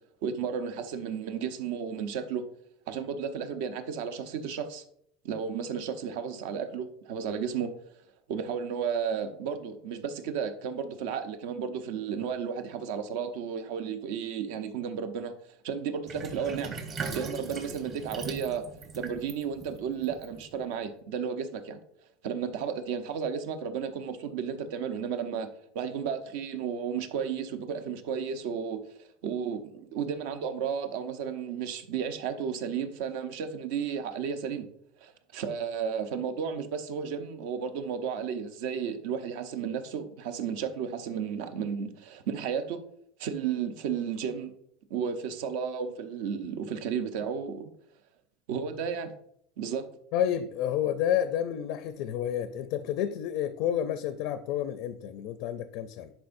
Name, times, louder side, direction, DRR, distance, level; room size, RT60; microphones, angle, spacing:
voice 1, 0.2-2.4 2.9-4.8 5.2-7.7 8.3-15.3 15.6-16.8 17.1-18.6 18.9-21.8 22.2-25.5 25.7-28.8 29.2-34.6 35.0-42.8 43.2-44.5 44.9-47.7 48.5-49.1 49.6-49.9, right 7 dB, 70° right, 9 dB, 0.8 m, -33 dB
Sink (filling or washing), 16.1-20.8, right 4 dB, 30° right, 1.1 m, -40 dB
voice 2, 50.1-56.1, left 10 dB, 55° left, 10 dB, 0.4 m, -30 dB
10.5 x 4.4 x 2.6 m, 0.71 s
cardioid pair, 160°, 0 cm